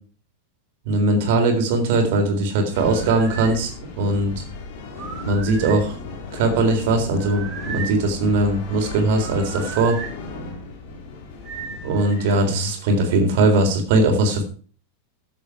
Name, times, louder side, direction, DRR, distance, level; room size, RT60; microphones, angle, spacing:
voice 1, 0.9-3.7 4.0-4.4 5.3-6.0 6.3-10.0 11.8-14.4, right 2 dB, 50° right, 4 dB, 3.8 m, -20 dB
sound 1, 2.7-13.4, left 3 dB, 45° left, 3.0 m, -36 dB
sound 2, 2.7-3.6 4.9-5.9 7.2-8.0 9.2-10.1 11.4-12.3, right 6 dB, 25° right, 3.8 m, -36 dB
14.5 x 7.7 x 4.8 m, 0.41 s
figure-of-eight pair, 90°, 0 cm